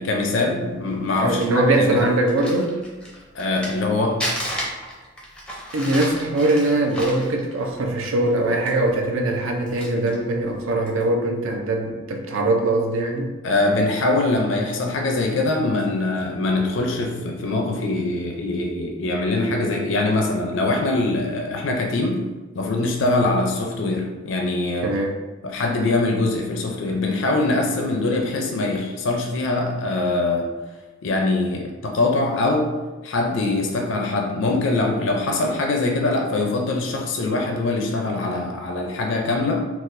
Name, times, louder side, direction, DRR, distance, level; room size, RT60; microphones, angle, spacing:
voice 1, 0.0-1.4 1.8-2.1 3.3-4.3 13.4-22.2 22.5-24.9 25.4-30.5 31.0-32.7 33.0-39.7, left 2 dB, 65° left, 1 dB, 0.4 m, -23 dB
Crumpling crinkling, 0.9-3.8 4.2-8.3 8.7-8.8 9.3-10.2 10.8-11.0, equal, 5° left, 0.5 m, -33 dB
voice 2, 1.2-2.8 5.7-13.3 24.8-25.1, right 2 dB, 85° right, 2 dB, 0.5 m, -21 dB
4.0 x 2.3 x 2.5 m, 1.2 s
head